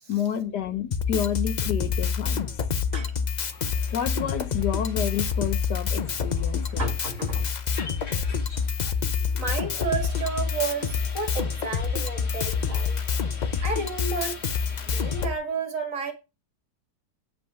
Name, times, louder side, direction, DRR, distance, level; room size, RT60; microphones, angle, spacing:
voice 1, 0.1-2.5 3.9-6.9, left 9 dB, 85° left, 1.6 m, -29 dB
Drum kit, 0.9-15.3, left 6 dB, 60° left, 0.4 m, -27 dB
sound 1, 3.4-15.3, left 3 dB, 40° left, 1.9 m, -45 dB
voice 2, 6.8-7.5 9.3-13.0 13.6-14.4 14.9-16.1, right 4 dB, 50° right, 2.2 m, -31 dB
9.0 x 5.6 x 5.4 m
omnidirectional pair, 1.8 m